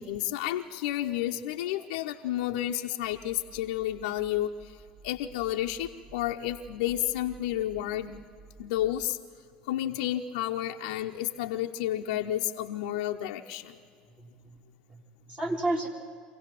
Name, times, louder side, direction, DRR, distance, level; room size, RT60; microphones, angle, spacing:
voice 1, 0.0-8.2 8.6-9.2 9.7-13.8, left 13 dB, 80° left, 1 dB, 0.7 m, -31 dB
sound 1, 3.0-9.1, right 4 dB, 85° right, 6.0 m, -54 dB
voice 2, 14.2-14.6 14.9-15.9, right 2 dB, 30° right, 1 dB, 3.4 m, -32 dB
25.5 x 16.5 x 7.7 m, 2.2 s
hypercardioid pair, 65°, 4 cm